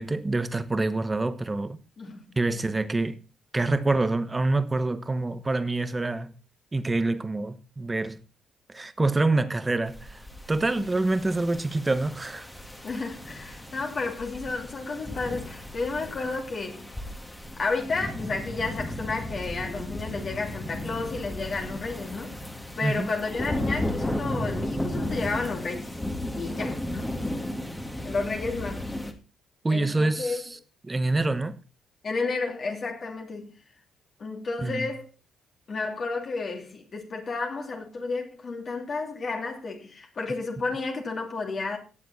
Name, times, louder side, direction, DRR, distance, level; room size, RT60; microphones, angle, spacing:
voice 1, 0.0-1.8 2.4-3.2 3.5-6.3 6.7-8.2 8.7-10.2 10.5-12.5 22.8-23.1 29.6-30.6 30.8-31.6 34.6-34.9, right 2 dB, 20° right, 1.1 m, -26 dB
sound 1, 9.9-29.1, left 1 dB, 10° left, 2.0 m, -35 dB
voice 2, 12.8-16.9 17.6-22.4 22.8-25.9 26.3-27.1 28.0-28.9 29.7-30.4 32.0-33.5 34.2-35.1 35.7-41.8, left 3 dB, 45° left, 2.9 m, -32 dB
17.5 x 7.4 x 4.1 m
cardioid pair, 90°, 0 cm